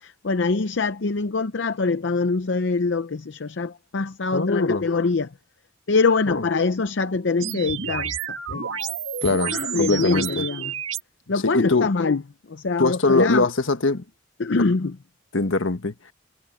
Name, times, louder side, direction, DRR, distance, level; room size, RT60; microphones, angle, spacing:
voice 1, 0.0-5.3 5.9-8.8 9.5-10.7 11.3-12.2 12.5-13.5 14.4-15.0, left 4 dB, 65° left, 0.6 m, -24 dB
voice 2, 4.3-4.8 6.3-6.4 9.2-10.4 11.4-11.9 12.8-14.0 15.3-16.1, left 3 dB, 85° left, 1.5 m, -22 dB
sound 1, 7.4-11.0, right 7 dB, 85° right, 2.2 m, -30 dB
head